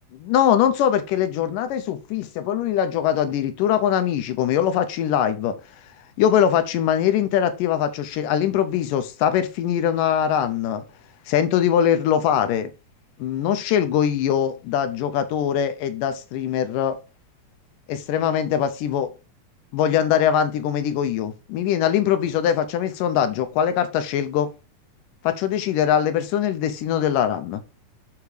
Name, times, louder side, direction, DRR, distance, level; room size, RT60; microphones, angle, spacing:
voice 1, 0.2-5.6 6.2-10.8 11.3-12.7 13.2-17.0 17.9-19.1 19.7-24.5 25.2-27.6, left 9 dB, 80° left, 10 dB, 2.3 m, -22 dB
8.5 x 3.5 x 4.9 m, 0.31 s
omnidirectional pair, 3.9 m